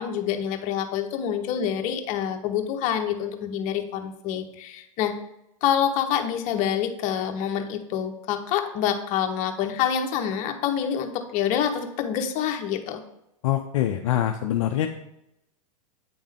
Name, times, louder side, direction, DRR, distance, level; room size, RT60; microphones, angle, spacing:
voice 1, 0.0-5.1 5.6-13.0, left 9 dB, 45° left, 6 dB, 0.8 m, -27 dB
voice 2, 13.4-14.9, left 12 dB, 65° left, 5 dB, 0.5 m, -24 dB
8.5 x 3.5 x 3.5 m, 0.84 s
hypercardioid pair, 105°, 17 cm